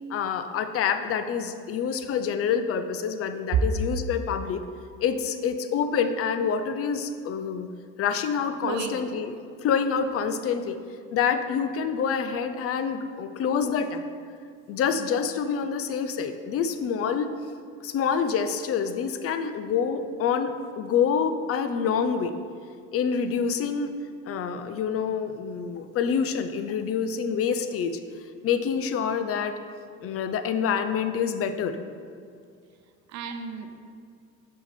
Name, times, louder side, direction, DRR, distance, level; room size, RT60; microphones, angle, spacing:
voice 1, 0.1-4.6 5.0-7.7 8.0-9.3 9.6-10.8 11.1-14.0 14.7-17.3 17.8-22.3 22.9-23.9 24.3-28.0 28.4-29.6 30.0-31.8, left 6 dB, 45° left, 9 dB, 0.5 m, -27 dB
voice 2, 8.6-9.4 33.1-33.8, right 8 dB, 60° right, 6 dB, 0.7 m, -30 dB
5.8 x 5.8 x 4.2 m, 2.2 s
cardioid pair, 105°, 31 cm